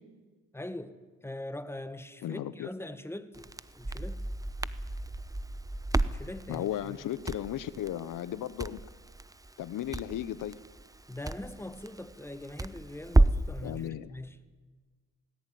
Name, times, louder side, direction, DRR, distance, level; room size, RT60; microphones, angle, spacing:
voice 1, 0.5-4.3 6.0-7.1 11.1-14.4, left 1 dB, 5° left, 1.7 m, -42 dB
voice 2, 2.2-2.7 6.5-8.8 9.6-10.6 13.6-14.1, left 11 dB, 70° left, 0.9 m, -35 dB
Crackle, 3.3-13.6, right 2 dB, 10° right, 0.8 m, -32 dB
18.5 x 17.0 x 9.4 m
cardioid pair, 70°, 33 cm